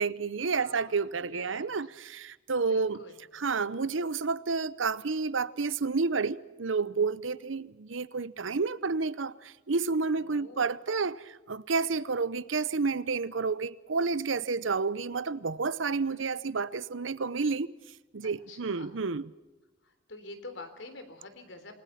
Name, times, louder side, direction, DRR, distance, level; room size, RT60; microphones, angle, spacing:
voice 1, 0.0-3.0 3.3-17.7 18.1-19.3, right 4 dB, 85° right, 0.8 m, -30 dB
voice 2, 0.6-1.7 2.7-3.2 10.2-10.7 18.2-19.0 19.8-21.8, left 2 dB, 75° left, 3.7 m, -47 dB
28.0 x 20.0 x 5.8 m
head